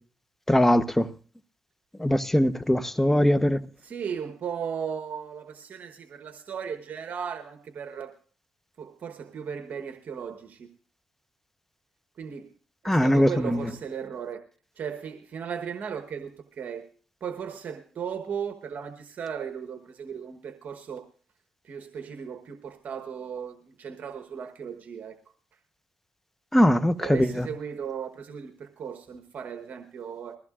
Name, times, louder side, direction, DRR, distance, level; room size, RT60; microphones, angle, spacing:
voice 1, 0.5-1.1 2.0-3.6 12.8-13.6 26.5-27.3, equal, 10° left, 0.9 m, -21 dB
voice 2, 3.8-8.2 8.8-10.7 12.2-12.5 12.8-14.4 14.8-16.9 17.2-21.0 21.6-25.2 27.0-30.4, right 7 dB, 65° right, 1.1 m, -36 dB
21.5 x 15.0 x 2.4 m
cardioid pair, 75°, 3 cm